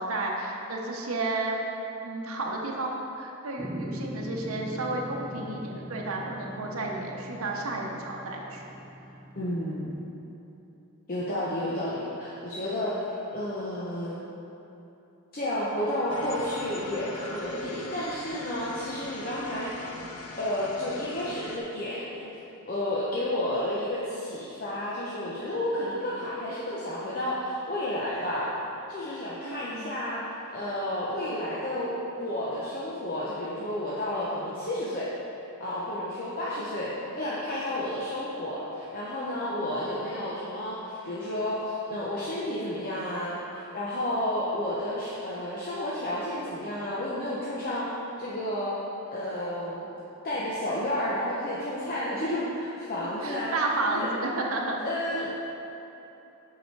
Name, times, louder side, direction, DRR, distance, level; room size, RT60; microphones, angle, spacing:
voice 1, 0.0-1.6 2.0-8.7 29.4-29.9 53.0-54.8 55.2-55.3, right 2 dB, 70° right, -1 dB, 0.8 m, -32 dB
sound 1, 3.6-10.0, right 1 dB, 10° right, 0.3 m, -41 dB
voice 2, 9.4-9.9 11.1-13.0 13.3-14.2 15.3-19.7 20.4-22.3 22.6-28.5 28.9-30.2 30.5-31.9 32.2-35.1 35.6-47.9 48.2-48.7 49.1-49.9 50.2-53.5 53.9-54.1 54.8-55.4, left 1 dB, 40° left, -8 dB, 0.8 m, -31 dB
sound 2, 16.1-21.6, left 3 dB, 85° left, 0.7 m, -41 dB
6.7 x 4.9 x 4.6 m, 3.0 s
head